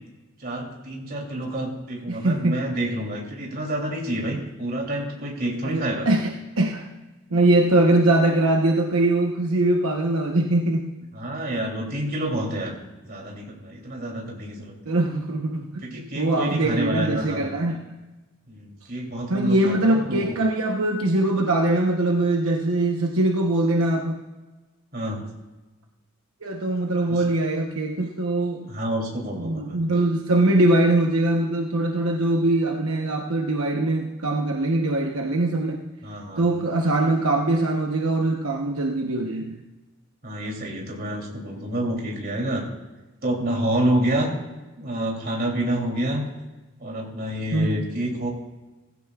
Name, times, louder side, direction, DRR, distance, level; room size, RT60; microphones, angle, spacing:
voice 1, 0.4-6.1 11.1-12.7 13.0-14.9 15.8-17.5 18.5-20.4 24.9-25.3 27.1-27.2 28.7-29.8 36.0-36.6 40.2-42.6 43.2-44.3 44.8-46.2 46.8-48.3, right 1 dB, 45° right, -1 dB, 3.0 m, -28 dB
voice 2, 2.1-2.6 4.3-4.4 5.6-6.9 7.3-11.0 14.9-17.8 19.3-24.2 26.4-28.7 29.4-35.8 36.4-39.6 47.5-47.8, right 2 dB, 75° right, 1 dB, 1.0 m, -22 dB
17.0 x 15.0 x 2.4 m, 1.2 s
head